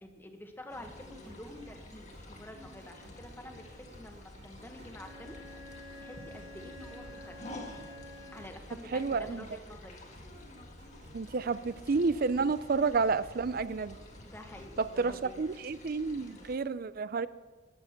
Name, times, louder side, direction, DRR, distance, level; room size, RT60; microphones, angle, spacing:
voice 1, 0.0-5.4 6.0-7.4 8.3-10.1 12.4-12.5 14.2-15.4, left 1 dB, 10° left, 4 dB, 1.4 m, -48 dB
sound 1, 0.7-16.6, left 1 dB, 40° left, 1.7 m, -51 dB
sound 2, 0.8-15.0, equal, 65° right, 4.1 m, -54 dB
Bowed string instrument, 4.9-8.7, left 1 dB, 30° right, 2.3 m, -49 dB
voice 2, 8.9-9.5 11.1-14.0 14.8-17.3, right 4 dB, 50° right, 16 dB, 0.5 m, -30 dB
14.0 x 10.5 x 5.9 m, 1.3 s
head